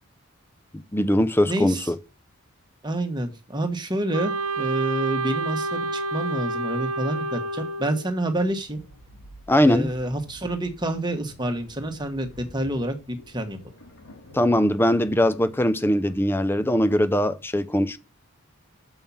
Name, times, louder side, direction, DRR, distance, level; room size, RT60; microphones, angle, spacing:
voice 1, 0.7-1.9 9.5-9.9 14.3-18.0, left 1 dB, 10° left, 0.5 m, -21 dB
voice 2, 1.5-1.9 2.8-8.8 9.6-13.6, right 1 dB, 20° right, 1.3 m, -28 dB
Wind instrument woodwind instrument, 4.1-8.1, right 2 dB, 70° right, 0.9 m, -29 dB
sound 1, 8.2-17.0, left 1 dB, 85° left, 3.6 m, -49 dB
7.1 x 5.6 x 7.0 m
head